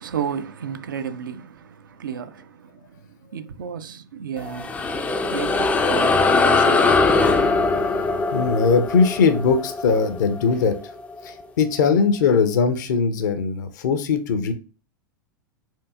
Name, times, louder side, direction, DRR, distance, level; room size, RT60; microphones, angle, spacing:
voice 1, 0.0-6.9, right 7 dB, 65° right, 0.4 m, -33 dB
sound 1, 4.4-11.2, left 3 dB, 10° left, 0.3 m, -21 dB
voice 2, 8.3-10.8 11.2-14.5, left 5 dB, 55° left, 0.6 m, -20 dB
4.5 x 2.6 x 2.3 m
figure-of-eight pair, 90°, 12 cm